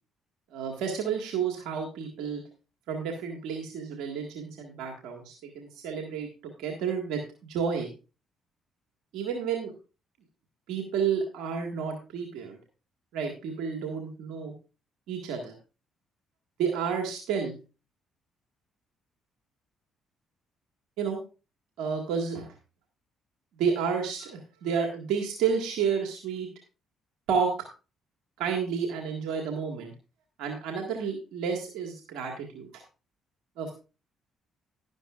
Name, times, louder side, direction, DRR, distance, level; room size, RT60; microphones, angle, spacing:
voice 1, 0.5-2.4 2.9-7.2 7.5-7.9 9.1-9.7 10.7-12.6 13.1-14.5 15.1-15.5 16.6-17.6 21.0-21.2 21.8-22.5 23.6-26.5 27.3-27.5 28.4-29.9 30.4-32.8 33.6-33.7, right 6 dB, 80° right, 2 dB, 1.8 m, -31 dB
11.5 x 11.5 x 2.5 m, 0.32 s
supercardioid pair, 65°, 0 cm